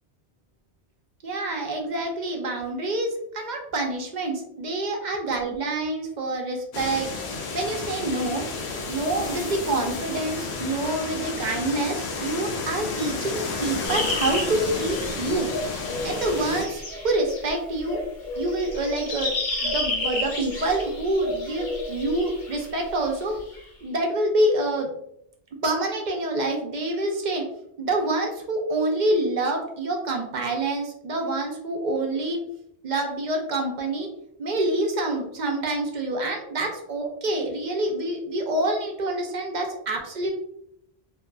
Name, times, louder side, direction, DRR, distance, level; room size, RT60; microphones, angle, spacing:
voice 1, 1.2-8.4 8.8-15.5 16.0-18.0 18.4-19.3 19.6-23.4 23.8-24.9 25.6-27.4 27.8-32.4 32.8-34.1 34.4-40.3, right 2 dB, 55° right, 3 dB, 0.6 m, -27 dB
sound 1, 6.7-16.6, left 3 dB, 85° left, 0.8 m, -32 dB
sound 2, 13.8-17.5 17.8-23.6, left 2 dB, 55° left, 0.8 m, -31 dB
2.6 x 2.5 x 2.2 m, 0.73 s
omnidirectional pair, 1.1 m